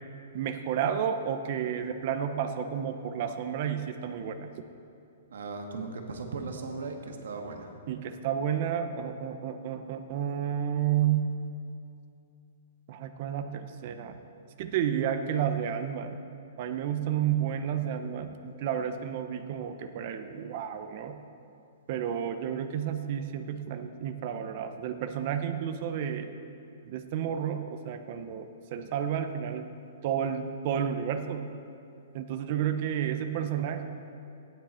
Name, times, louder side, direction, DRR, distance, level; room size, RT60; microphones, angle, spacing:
voice 1, 0.3-4.5 7.9-11.4 12.9-14.2 14.6-16.2 16.6-21.2 21.9-26.3 26.9-29.7 30.0-31.5 32.1-33.8, right 9 dB, 35° right, 7 dB, 0.6 m, -31 dB
voice 2, 5.3-7.7, right 3 dB, 80° right, 3 dB, 1.6 m, -37 dB
15.5 x 9.7 x 4.3 m, 2.6 s
hypercardioid pair, 175°, 0 cm